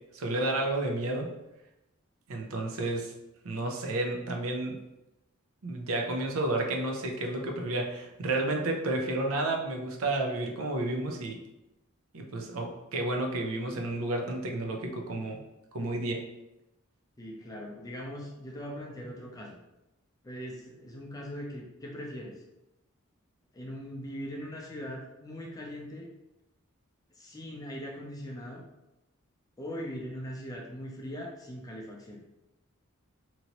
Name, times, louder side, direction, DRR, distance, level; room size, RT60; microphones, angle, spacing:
voice 1, 0.1-1.3 2.3-3.1 3.4-4.8 5.6-11.4 12.1-15.4 15.7-16.2, right 2 dB, 75° right, 2 dB, 0.6 m, -31 dB
voice 2, 17.2-19.6 20.2-22.4 23.5-26.1 27.1-28.6 29.6-32.2, equal, 15° left, -2 dB, 0.5 m, -40 dB
3.0 x 2.6 x 2.9 m, 0.94 s
head